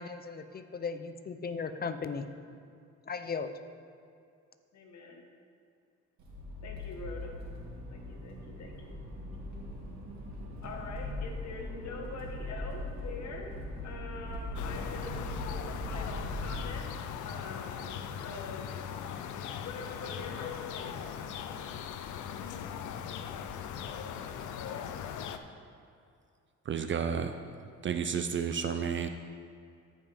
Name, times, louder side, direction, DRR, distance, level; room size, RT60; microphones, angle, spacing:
voice 1, 0.0-2.3 3.1-3.5, left 5 dB, 30° left, 10 dB, 0.5 m, -37 dB
voice 2, 4.7-5.3 6.6-7.3 7.9-9.0 10.6-13.5 13.8-16.9 17.2-18.8 19.6-21.4, left 3 dB, 65° left, 2 dB, 1.4 m, -44 dB
Accelerating revving vroom, 6.2-16.7, left 1 dB, 75° right, 2.3 m, -40 dB
sound 1, 14.6-25.4, left 8 dB, 80° left, 0.6 m, -39 dB
voice 3, 26.7-27.4 27.8-29.1, right 7 dB, 40° right, 8 dB, 0.4 m, -31 dB
14.0 x 5.3 x 3.5 m, 2.4 s
cardioid pair, 90°, 30 cm